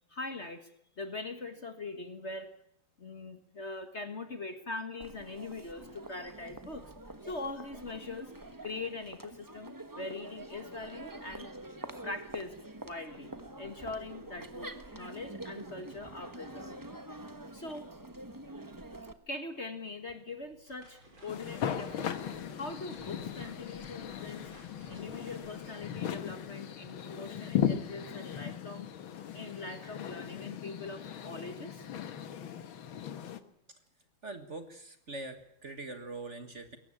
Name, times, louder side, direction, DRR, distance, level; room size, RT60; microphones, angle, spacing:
voice 1, 0.1-0.7 1.0-2.5 3.0-6.9 7.2-8.3 8.6-11.5 12.0-12.6 12.8-16.7 17.5-17.9 19.3-22.2 22.5-24.5 24.9-28.9 29.3-31.9 33.3-33.4, left 3 dB, 35° left, 8 dB, 1.7 m, -42 dB
Crowd, 5.0-19.1, right 2 dB, 15° right, 0.9 m, -46 dB
sound 1, 20.3-26.7, right 1 dB, 75° right, 6.8 m, -57 dB
sound 2, 21.3-33.4, left 9 dB, 80° left, 2.1 m, -37 dB
voice 2, 34.2-36.8, right 2 dB, 40° right, 8 dB, 1.8 m, -43 dB
22.0 x 18.0 x 8.7 m, 0.72 s
omnidirectional pair, 2.2 m